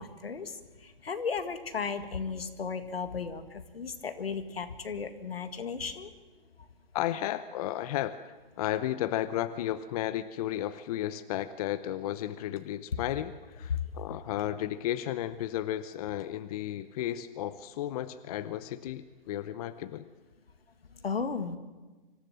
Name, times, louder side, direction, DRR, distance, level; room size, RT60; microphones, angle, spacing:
voice 1, 0.0-6.1 6.6-6.7 20.9-21.6, left 5 dB, 85° left, 9 dB, 1.9 m, -35 dB
voice 2, 6.9-20.1, left 12 dB, 40° left, 13 dB, 0.8 m, -33 dB
25.5 x 14.5 x 7.5 m, 1.2 s
hypercardioid pair, 135°, 29 cm